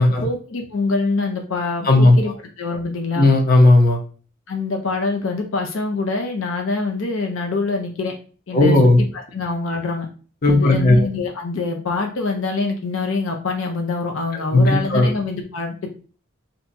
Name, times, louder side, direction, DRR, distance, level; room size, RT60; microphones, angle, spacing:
voice 1, 0.2-3.3 4.5-8.1 8.5-8.8 9.1-10.1 10.5-15.9, left 3 dB, 85° left, 2 dB, 0.6 m, -25 dB
voice 2, 3.2-4.0 8.5-9.0 10.4-11.1 14.5-15.1, left 2 dB, 50° left, 1 dB, 0.8 m, -14 dB
2.7 x 2.3 x 3.9 m, 0.39 s
head